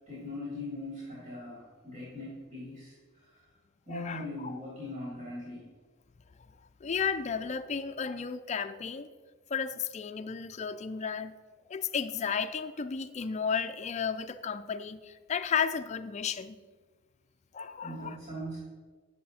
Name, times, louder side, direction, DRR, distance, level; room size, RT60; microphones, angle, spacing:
voice 1, 0.1-3.5 3.8-5.7 17.8-18.6, left 1 dB, 40° right, 3.4 m, -40 dB
voice 2, 3.9-4.6 6.8-9.1 9.5-11.3 11.7-16.6 17.5-18.2, left 6 dB, 35° left, 0.4 m, -33 dB
10.0 x 7.7 x 4.2 m
head